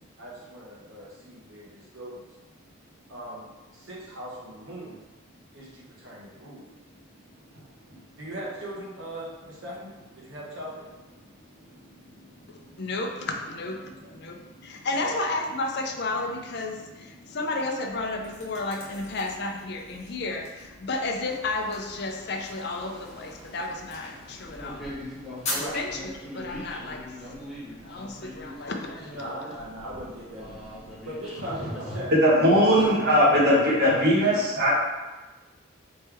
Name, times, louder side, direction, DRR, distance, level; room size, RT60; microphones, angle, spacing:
voice 1, 0.2-2.2 3.1-5.0 5.5-6.7 8.2-10.9 13.8-14.2 14.9-15.1 25.6-25.8 29.0-30.6 31.0-32.1, equal, 75° right, -4 dB, 1.3 m, -39 dB
voice 2, 12.5-24.9 25.5-27.1 27.8-29.2, left 2 dB, 55° left, 3 dB, 0.5 m, -32 dB
sound 1, 17.8-26.3, left 1 dB, 35° left, 1.2 m, -42 dB
sound 2, 20.9-33.0, left 1 dB, ahead, 1.0 m, -43 dB
voice 3, 32.1-34.8, equal, 55° right, -6 dB, 1.4 m, -19 dB
4.2 x 3.5 x 3.4 m, 1.2 s
head